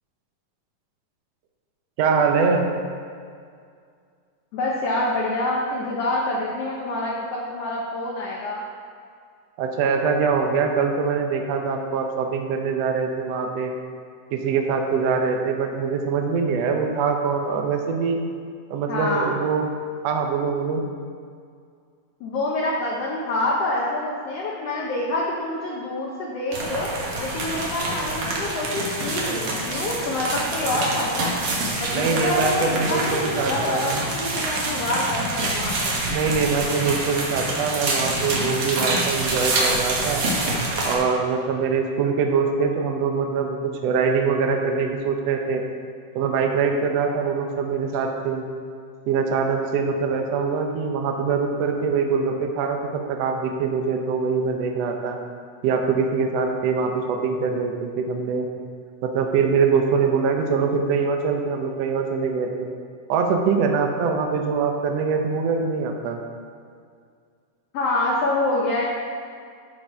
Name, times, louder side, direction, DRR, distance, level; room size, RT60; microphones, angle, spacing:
voice 1, 2.0-2.7 9.6-13.8 14.3-18.2 18.7-19.7 20.0-20.8 31.9-34.0 36.1-40.3 40.8-45.6 46.1-48.4 49.1-55.2 55.6-58.5 59.0-62.7 63.1-66.2, right 5 dB, 75° right, 3 dB, 1.5 m, -23 dB
voice 2, 4.5-8.6 18.9-19.3 22.2-26.9 27.2-31.4 31.8-35.9 67.7-68.9, left 2 dB, 65° left, -4 dB, 1.6 m, -26 dB
sound 1, 26.5-40.9, right 2 dB, 55° right, 1.9 m, -26 dB
12.0 x 5.1 x 4.4 m, 2.2 s
omnidirectional pair, 3.8 m